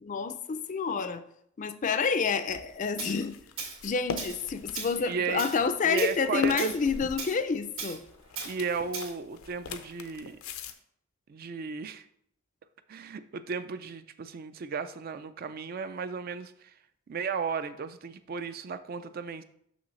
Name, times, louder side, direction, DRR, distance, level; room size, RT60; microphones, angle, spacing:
voice 1, 0.0-1.2 1.6-3.4 3.8-8.0, left 5 dB, 35° left, 10 dB, 0.4 m, -28 dB
sound 1, 2.5-10.7, left 4 dB, 80° left, 0.6 m, -42 dB
Tools, 3.0-3.1 3.6-3.8 4.2-4.4 4.7-5.0 5.4-5.6 6.0-6.2 6.6-6.8 7.2-7.4 7.8-8.0 8.4-8.5 8.9-9.1, right 5 dB, 75° right, 2.3 m, -37 dB
voice 2, 5.1-5.4 5.8-6.7 8.4-10.4 11.3-12.0 12.9-16.7 17.1-19.4, right 5 dB, 45° right, 11 dB, 0.4 m, -34 dB
6.4 x 6.1 x 3.1 m, 0.69 s
head